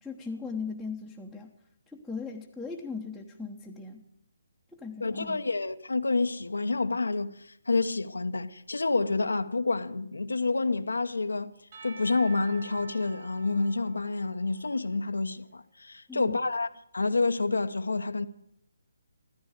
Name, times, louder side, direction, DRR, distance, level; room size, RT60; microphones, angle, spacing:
voice 1, 0.0-1.5 1.9-4.0 4.8-5.4 16.1-16.4, left 4 dB, ahead, 1.2 m, -38 dB
voice 2, 5.0-11.5 11.8-18.3, left 3 dB, 80° left, 1.0 m, -28 dB
Percussion / Church bell, 11.7-15.4, right 4 dB, 50° right, 6.2 m, -48 dB
15.5 x 14.5 x 6.6 m
figure-of-eight pair, 145°, 0 cm